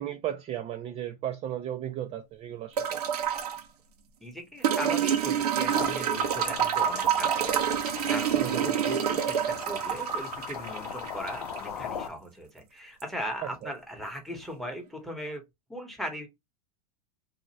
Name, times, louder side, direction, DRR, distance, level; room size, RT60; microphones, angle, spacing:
voice 1, 0.0-3.0 8.3-8.8 13.6-13.7, right 11 dB, 30° right, 0.4 m, -35 dB
sound 1, 2.8-3.6 4.6-11.6 13.0-13.1, right 9 dB, 85° right, 0.7 m, -27 dB
voice 2, 4.2-15.4 15.7-16.3, equal, ahead, 1.0 m, -39 dB
sound 2, 5.7-12.1, left 7 dB, 80° left, 0.8 m, -39 dB
2.7 x 2.4 x 2.9 m
hypercardioid pair, 110°, 19 cm